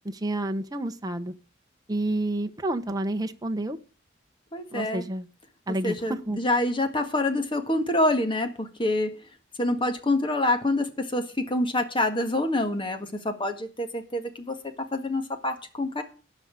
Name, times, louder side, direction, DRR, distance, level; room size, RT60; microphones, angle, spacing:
voice 1, 0.0-1.3 1.9-3.8 4.7-5.3 5.7-6.4, right 1 dB, 20° right, 7 dB, 1.0 m, -29 dB
voice 2, 4.5-5.0 5.8-9.2 9.6-14.5 14.9-16.0, left 1 dB, 25° left, 8 dB, 1.7 m, -26 dB
12.5 x 5.7 x 9.0 m, 0.37 s
head